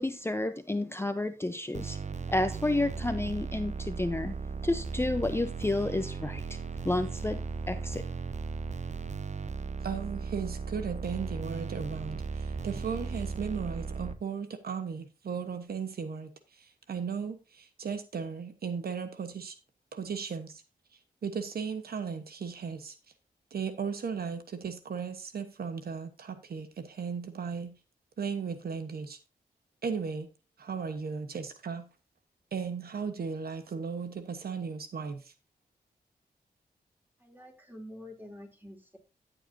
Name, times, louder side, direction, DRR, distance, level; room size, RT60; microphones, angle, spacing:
voice 1, 0.0-2.0 2.3-4.3 4.6-6.6 6.8-8.0, left 2 dB, 15° left, 0.7 m, -31 dB
sound 1, 1.7-14.1, right 5 dB, 45° right, 0.8 m, -36 dB
voice 2, 9.8-16.3 16.6-19.5 19.9-20.6 21.2-23.0 23.5-27.7 28.2-29.2 29.8-30.3 30.6-31.8 32.5-35.3, right 6 dB, 75° right, 1.1 m, -36 dB
voice 3, 37.2-39.0, left 1 dB, 10° right, 3.1 m, -47 dB
13.5 x 8.0 x 2.7 m
cardioid pair, 65°, 16 cm